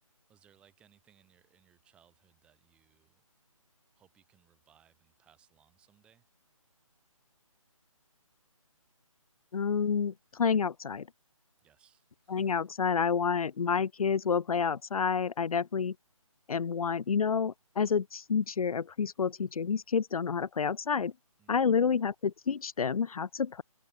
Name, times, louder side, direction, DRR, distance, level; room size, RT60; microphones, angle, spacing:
voice 1, 0.0-3.2 3.9-6.3 11.6-12.6 21.4-21.8, right 9 dB, 5° right, 6.3 m, -66 dB
voice 2, 9.5-11.1 12.3-15.9 16.5-21.1 21.5-23.6, left 6 dB, 80° left, 0.5 m, -29 dB
hypercardioid pair, 175°, 18 cm